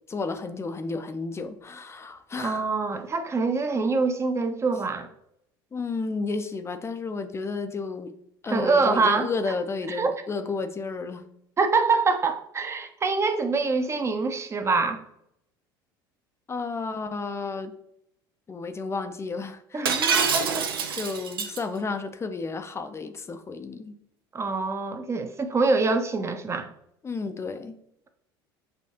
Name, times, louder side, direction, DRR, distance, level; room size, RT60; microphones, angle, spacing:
voice 1, 0.1-2.7 5.7-8.2 8.4-11.3 16.5-17.7 18.5-20.0 20.9-24.0 27.0-27.8, left 4 dB, 20° left, 0.5 m, -32 dB
voice 2, 2.4-5.1 8.5-9.3 9.9-10.1 11.6-15.0 19.7-21.1 24.3-26.7, right 4 dB, 25° right, 0.6 m, -25 dB
Shatter, 19.9-21.6, right 6 dB, 85° right, 0.5 m, -25 dB
6.4 x 2.6 x 2.7 m
hypercardioid pair, 75°, 12 cm